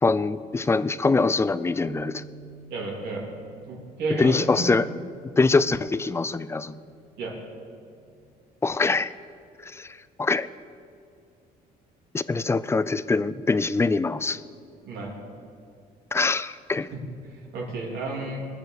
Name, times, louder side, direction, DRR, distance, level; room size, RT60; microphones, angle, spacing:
voice 1, 0.0-2.2 4.2-4.9 5.4-6.8 8.6-9.1 9.6-10.5 12.1-14.4 16.1-16.9, left 3 dB, 15° left, 16 dB, 0.4 m, -23 dB
sound 1, 1.9-8.1, right 4 dB, 25° right, 1.2 m, -48 dB
voice 2, 2.7-3.2 3.7-4.7 7.2-7.4 14.8-15.2 16.9-17.0 17.3-18.4, right 2 dB, 75° right, -2 dB, 3.1 m, -32 dB
21.0 x 6.9 x 6.6 m, 2.4 s
cardioid pair, 110°, 17 cm